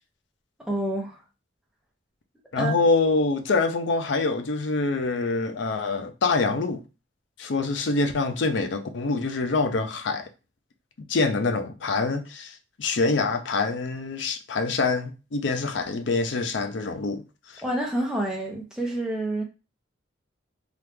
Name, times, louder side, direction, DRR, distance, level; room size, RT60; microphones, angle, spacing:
voice 1, 0.7-1.2 2.6-2.7 17.6-19.4, right 1 dB, 5° right, 0.7 m, -28 dB
voice 2, 2.5-6.8 7.4-10.3 11.1-17.2 17.5-17.6, left 3 dB, 65° left, 0.5 m, -25 dB
3.0 x 2.4 x 3.4 m
head